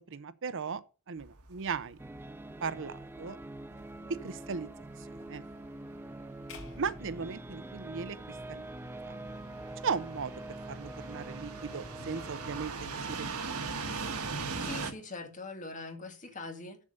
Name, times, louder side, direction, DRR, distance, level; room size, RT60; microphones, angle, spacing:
voice 1, 0.1-0.8 1.1-2.0 2.6-3.4 3.7-3.8 4.2-4.7 5.1-5.5 6.8-8.7 9.0-9.2 9.8-10.3 10.7-12.7 13.1-13.7, right 5 dB, 60° right, 0.7 m, -37 dB
sound 1, 1.2-14.9, right 4 dB, 80° right, 1.6 m, -41 dB
sound 2, 2.0-12.7, right 1 dB, 10° right, 0.4 m, -45 dB
sound 3, 6.5-8.8, left 2 dB, 65° left, 2.3 m, -51 dB
voice 2, 14.6-16.8, left 3 dB, 35° left, 2.0 m, -42 dB
7.8 x 7.2 x 6.5 m
head